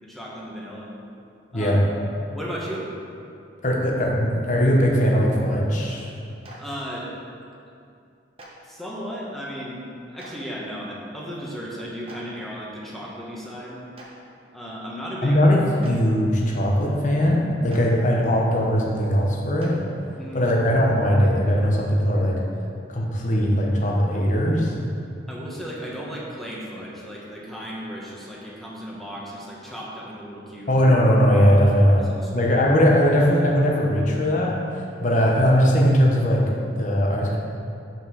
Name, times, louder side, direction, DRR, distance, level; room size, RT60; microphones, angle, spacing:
voice 1, 0.0-0.9 1.5-1.8 2.3-2.9 6.6-7.1 8.6-9.8 10.1-13.8 14.5-15.4 15.8-15.9 20.1-20.4 25.3-30.8 32.0-32.5, equal, ahead, -5 dB, 1.1 m, -35 dB
voice 2, 3.6-6.1 15.2-19.8 20.3-22.4 22.9-24.7 30.7-32.1 32.3-34.6 35.0-36.4 36.8-37.4, equal, 40° left, -2 dB, 1.1 m, -19 dB
Clapping, 6.4-6.6 8.4-8.5 10.2-10.3 12.1-12.2 13.9-14.1 15.8-15.9 17.7-17.8 19.6-19.7, right 2 dB, 30° right, 1.1 m, -43 dB
6.0 x 5.5 x 6.2 m, 2.5 s
head